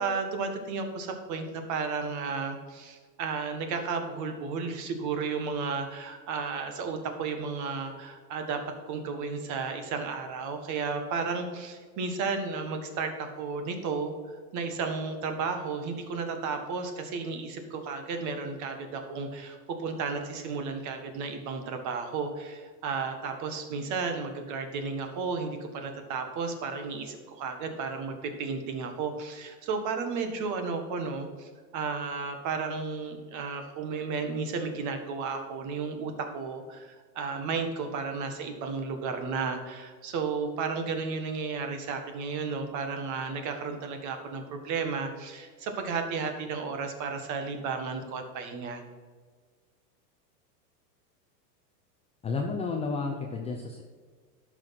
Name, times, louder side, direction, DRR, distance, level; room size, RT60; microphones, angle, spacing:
voice 1, 0.0-8.6 8.9-14.1 14.5-48.8, right 4 dB, 35° right, 6 dB, 1.7 m, -33 dB
voice 2, 52.2-53.8, left 4 dB, 15° left, 1 dB, 0.7 m, -31 dB
11.5 x 6.2 x 5.9 m, 1.5 s
supercardioid pair, 140°, 49 cm